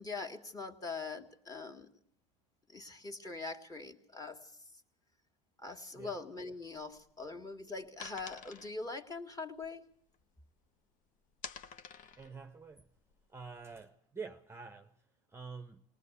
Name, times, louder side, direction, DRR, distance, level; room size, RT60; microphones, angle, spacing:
voice 1, 0.0-1.9 2.7-4.5 5.6-9.9, left 3 dB, 20° left, 2.2 m, -43 dB
sound 1, 6.7-10.7 11.1-13.8, left 7 dB, 50° left, 1.2 m, -51 dB
voice 2, 12.2-12.9 13.3-14.9 15.3-15.8, right 5 dB, 15° right, 0.9 m, -47 dB
20.0 x 19.0 x 8.3 m
supercardioid pair, 100°, 17 cm